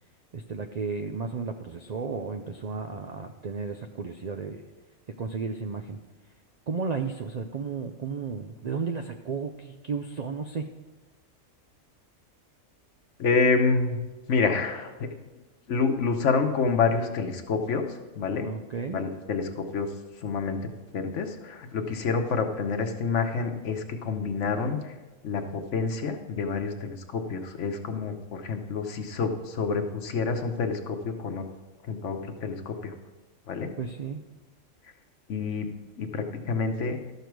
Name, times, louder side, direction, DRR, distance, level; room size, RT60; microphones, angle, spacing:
voice 1, 0.3-4.6 5.2-6.0 6.7-10.7 18.4-19.0 33.8-34.2, right 5 dB, 85° right, 5 dB, 0.3 m, -33 dB
voice 2, 13.2-14.0 14.3-15.0 15.7-18.5 18.9-19.9 20.2-20.6 20.9-24.9 25.2-31.4 31.9-32.9 33.5-33.7 35.3-35.7 36.0-37.0, left 4 dB, 65° left, 6 dB, 1.2 m, -28 dB
12.5 x 6.8 x 4.6 m, 1.2 s
omnidirectional pair, 1.4 m